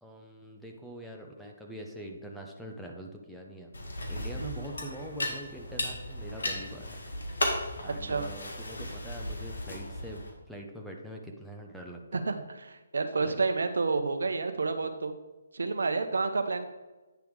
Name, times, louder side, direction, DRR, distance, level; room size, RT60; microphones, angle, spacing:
voice 1, 0.0-3.7 4.1-7.0 7.8-12.3 13.2-13.4, right 1 dB, ahead, 0 dB, 0.7 m, -44 dB
sound 1, 3.7-10.3, left 1 dB, 80° left, 1.9 m, -35 dB
voice 2, 12.1-15.1 15.5-16.7, right 4 dB, 80° right, 7 dB, 0.7 m, -30 dB
9.0 x 3.5 x 4.7 m, 1.1 s
hypercardioid pair, 150°, 0 cm